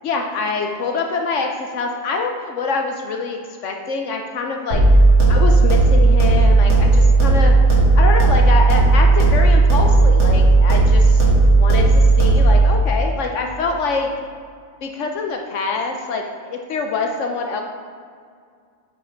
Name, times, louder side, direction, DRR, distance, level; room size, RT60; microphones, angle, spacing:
voice 1, 0.0-4.8 5.3-7.5 8.0-11.2 11.6-14.1 14.8-17.6, left 4 dB, 70° left, 3 dB, 0.9 m, -25 dB
sound 1, 4.7-12.7, right 3 dB, 60° right, 2.3 m, -13 dB
8.1 x 5.0 x 4.4 m, 2.2 s
omnidirectional pair, 1.4 m